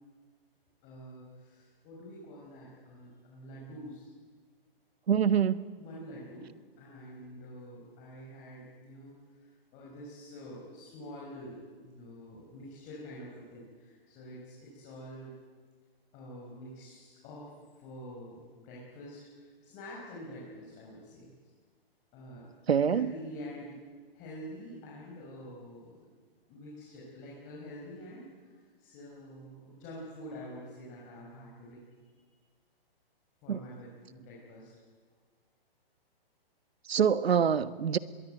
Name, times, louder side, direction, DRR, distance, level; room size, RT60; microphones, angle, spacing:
voice 1, 0.8-4.1 5.8-6.5 6.8-15.3 16.1-21.3 22.1-22.5 22.8-23.8 24.1-26.1 26.5-31.9 33.4-34.7, equal, 25° left, -5 dB, 6.0 m, -47 dB
voice 2, 5.1-5.6 22.7-23.1 33.5-33.6 36.9-38.0, right 7 dB, 80° right, 14 dB, 1.4 m, -25 dB
24.0 x 22.0 x 9.2 m, 1.5 s
hypercardioid pair, 155°, 30 cm